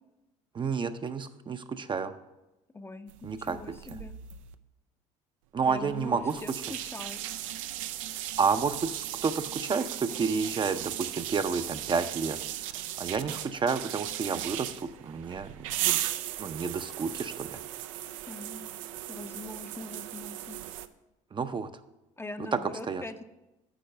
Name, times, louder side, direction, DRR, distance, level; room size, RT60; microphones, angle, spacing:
voice 1, 0.5-2.2 3.2-3.8 5.5-6.4 8.4-12.4 13.0-16.0 16.4-17.6 21.3-21.7 22.5-22.6 22.9-23.0, right 5 dB, 30° right, 9 dB, 0.5 m, -30 dB
voice 2, 2.7-4.1 5.6-7.2 18.3-18.8 19.1-20.6 22.2-23.2, left 2 dB, 15° left, 9 dB, 0.5 m, -42 dB
sound 1, 3.1-4.5 5.6-20.9, right 12 dB, 85° right, 0.4 m, -37 dB
8.9 x 4.6 x 6.6 m, 0.98 s
hypercardioid pair, 70°, 16 cm